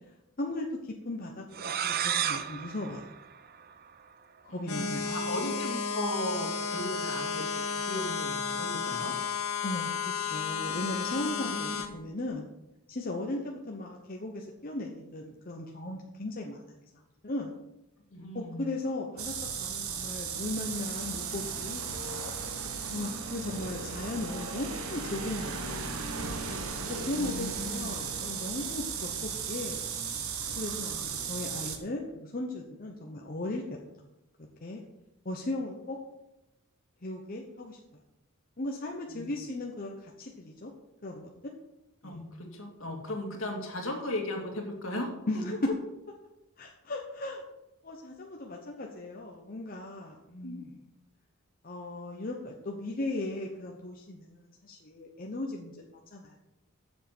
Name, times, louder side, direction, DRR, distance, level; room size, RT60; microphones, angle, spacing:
voice 1, 0.4-1.5 1.8-3.1 4.4-5.1 9.6-12.5 12.9-16.8 17.2-17.5 18.3-22.3 22.9-26.1 26.9-29.8 30.1-30.2 30.6-33.6 34.6-34.8 35.2-36.0 37.0-37.8 38.6-40.7 41.0-41.5 42.0-42.2 45.3-45.7 46.6-47.4 47.8-50.8 51.6-56.4, left 2 dB, 40° left, 0 dB, 0.9 m, -37 dB
sound 1, 1.5-4.1, right 9 dB, 45° right, 0.5 m, -33 dB
voice 2, 4.5-9.2 11.7-11.8 18.1-18.7 27.1-27.9 39.1-39.3 42.0-45.1 50.4-50.6, left 1 dB, 65° left, 1 dB, 2.2 m, -37 dB
sound 2, 4.7-11.9, left 5 dB, 90° left, 1.7 m, -33 dB
sound 3, 19.2-31.8, right 5 dB, 75° right, 1.3 m, -36 dB
7.5 x 7.4 x 6.0 m, 0.93 s
head